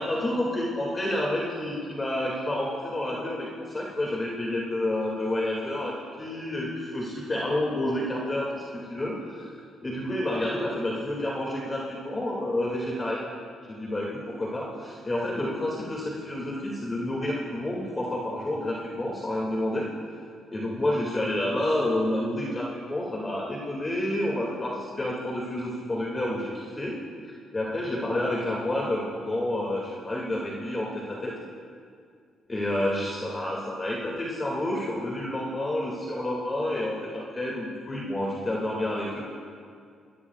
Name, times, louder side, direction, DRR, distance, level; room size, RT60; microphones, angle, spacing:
voice 1, 0.0-13.3 13.7-19.9 20.5-27.0 27.5-31.4 32.5-39.3, left 1 dB, 25° left, -4 dB, 2.2 m, -29 dB
21.5 x 15.0 x 2.4 m, 2.2 s
cardioid pair, 90°, 0 cm